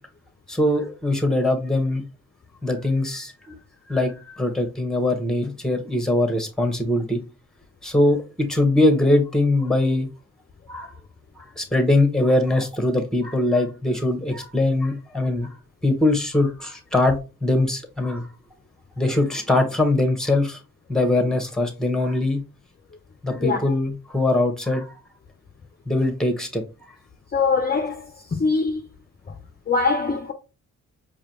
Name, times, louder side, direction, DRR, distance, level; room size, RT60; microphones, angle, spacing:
voice 1, 0.5-2.0 2.6-3.5 3.9-7.2 7.8-10.1 10.7-10.9 11.4-15.5 15.8-18.3 19.0-20.6 20.9-22.4 23.2-24.9 25.9-26.6, left 2 dB, ahead, 1.3 m, -22 dB
voice 2, 23.3-23.7 27.3-28.9 29.7-30.3, left 4 dB, 30° left, 0.6 m, -23 dB
4.8 x 2.3 x 2.9 m
supercardioid pair, 40°, 35 cm